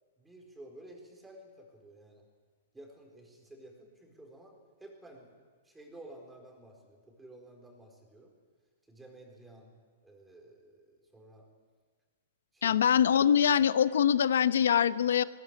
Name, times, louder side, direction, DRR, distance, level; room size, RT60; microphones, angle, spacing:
voice 1, 0.2-2.2 2.7-5.3 5.6-8.3 8.9-9.7 10.0-11.5 12.5-12.8, right 1 dB, 5° right, 1 dB, 4.3 m, -52 dB
voice 2, 12.6-15.2, left 8 dB, 85° left, 14 dB, 0.9 m, -24 dB
20.5 x 18.5 x 9.6 m, 1.5 s
hypercardioid pair, 155°, 0 cm